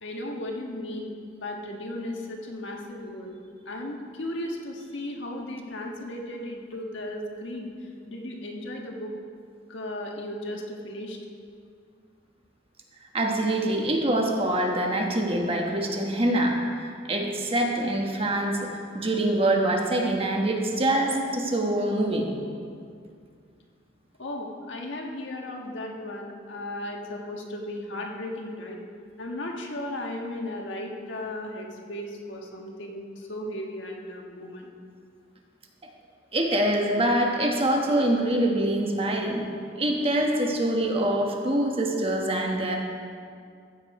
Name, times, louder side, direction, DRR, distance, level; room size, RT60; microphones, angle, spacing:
voice 1, 0.0-3.4 3.7-7.7 8.1-9.1 9.7-11.2 24.2-28.8 29.2-34.7, left 1 dB, 75° left, 0 dB, 1.5 m, -35 dB
voice 2, 13.1-18.7 18.9-22.3 36.3-39.4 39.8-42.8, right 1 dB, 30° right, 1 dB, 1.2 m, -25 dB
14.5 x 7.4 x 4.8 m, 2.2 s
head